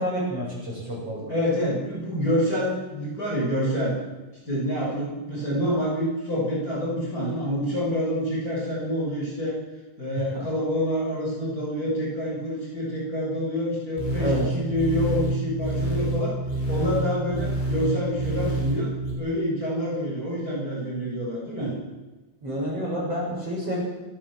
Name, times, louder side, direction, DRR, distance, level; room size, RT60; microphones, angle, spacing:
voice 1, 0.0-1.3 10.2-10.5 14.2-14.5 22.4-23.8, equal, 30° right, -3 dB, 8.4 m, -29 dB
voice 2, 1.3-4.0 4.4-9.6 10.0-16.4 16.7-18.9 19.2-21.7, equal, 20° left, -4 dB, 7.7 m, -27 dB
sound 1, 14.0-19.1, right 2 dB, 70° left, 8.3 m, -28 dB
29.0 x 18.5 x 7.7 m, 1.2 s
omnidirectional pair, 5.3 m